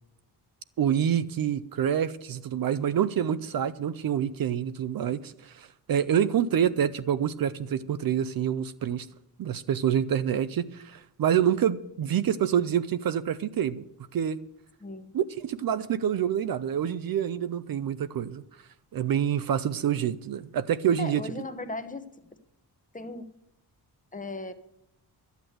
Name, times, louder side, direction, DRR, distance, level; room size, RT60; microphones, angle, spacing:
voice 1, 0.8-9.1 9.4-13.9 14.1-14.4 15.1-18.4 18.9-21.2, right 9 dB, 55° right, 0.6 m, -27 dB
voice 2, 14.8-15.1 21.0-22.1 22.9-23.3 24.1-24.5, left 2 dB, 20° left, 0.8 m, -37 dB
12.5 x 8.2 x 7.8 m
wide cardioid pair, 155°, 42 cm